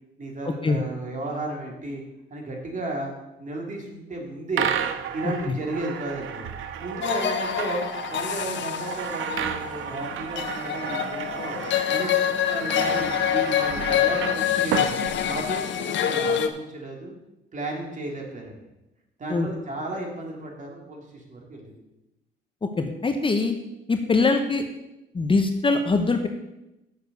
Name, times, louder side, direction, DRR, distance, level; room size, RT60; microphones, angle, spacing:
voice 1, 0.2-2.0 2.3-3.1 3.4-4.7 5.1-6.4 6.8-7.8 8.1-11.6 11.9-14.8 15.2-17.1 17.5-18.6 19.2-21.8, right 2 dB, 40° right, 0 dB, 2.7 m, -33 dB
sound 1, 4.5-15.8, right 9 dB, 85° right, 0.7 m, -32 dB
sound 2, 7.0-16.5, left 10 dB, 70° left, 0.8 m, -26 dB
voice 2, 22.8-23.5 23.9-24.6 25.1-26.3, left 3 dB, 25° left, 6 dB, 0.8 m, -22 dB
6.7 x 6.6 x 6.7 m, 0.95 s
cardioid pair, 90°, 20 cm